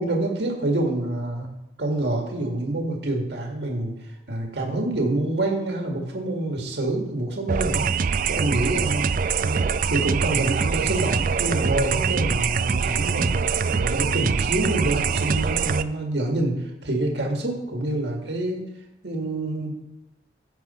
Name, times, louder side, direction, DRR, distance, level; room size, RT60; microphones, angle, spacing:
voice 1, 0.0-1.5 1.8-3.9 4.3-7.9 8.3-18.6 19.0-19.7, right 2 dB, 65° right, 1 dB, 1.8 m, -27 dB
sound 1, 7.5-15.8, right 6 dB, 45° right, 0.4 m, -24 dB
15.0 x 6.2 x 4.3 m, 0.90 s
head